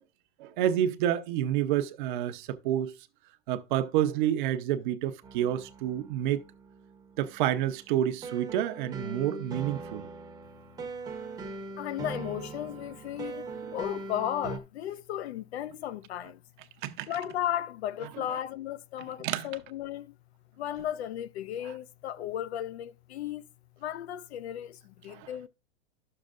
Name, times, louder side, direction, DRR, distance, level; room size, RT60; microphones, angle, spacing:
voice 1, 0.4-2.9 3.5-6.4 7.2-10.1 16.8-17.1 18.3-18.4 19.2-19.5 25.1-25.5, right 11 dB, 45° right, 0.8 m, -29 dB
sound 1, 5.2-14.6, right 3 dB, 10° right, 0.8 m, -41 dB
voice 2, 11.8-16.4 17.1-20.1 20.6-23.5 23.8-25.5, left 11 dB, 70° left, 0.6 m, -35 dB
11.5 x 6.6 x 2.5 m
supercardioid pair, 145°, 33 cm